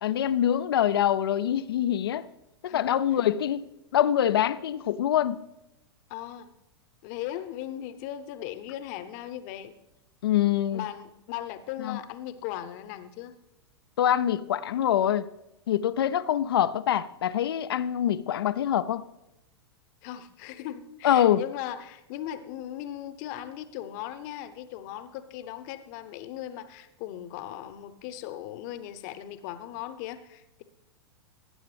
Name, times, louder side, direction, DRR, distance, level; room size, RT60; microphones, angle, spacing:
voice 1, 0.0-2.3 2.6-5.4 10.2-10.8 11.8-12.0 14.0-15.3 15.7-19.1 21.0-21.4, left 10 dB, 65° left, 0.5 m, -25 dB
voice 2, 6.1-6.5 7.0-9.7 10.7-13.4 20.0-30.6, left 12 dB, 45° left, 0.9 m, -38 dB
18.5 x 8.8 x 3.4 m
figure-of-eight pair, 95°, 14 cm